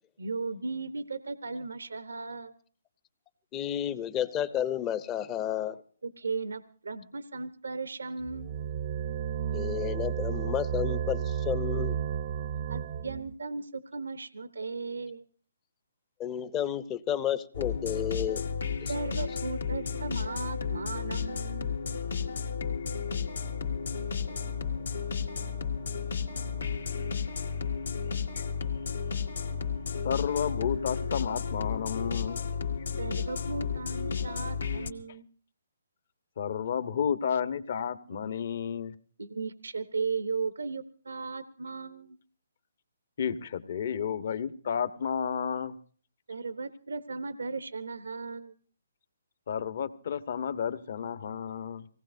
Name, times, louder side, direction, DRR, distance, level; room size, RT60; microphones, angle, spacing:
voice 1, 0.2-2.5 6.0-8.5 12.7-15.3 18.9-21.7 33.0-35.3 39.2-42.2 46.3-48.5, right 4 dB, 85° right, 12 dB, 0.9 m, -36 dB
voice 2, 3.5-5.8 9.5-12.0 16.2-18.4 18.8-19.4, left 10 dB, 20° left, 15 dB, 0.7 m, -32 dB
sound 1, 8.2-13.3, right 9 dB, 40° right, 0.6 m, -32 dB
sound 2, 17.5-34.9, left 6 dB, 85° left, 2.2 m, -33 dB
voice 3, 30.0-32.4 36.4-38.9 43.2-45.7 49.5-51.9, left 7 dB, 55° left, 12 dB, 1.1 m, -31 dB
25.0 x 18.5 x 2.7 m, 0.43 s
hypercardioid pair, 155°, 0 cm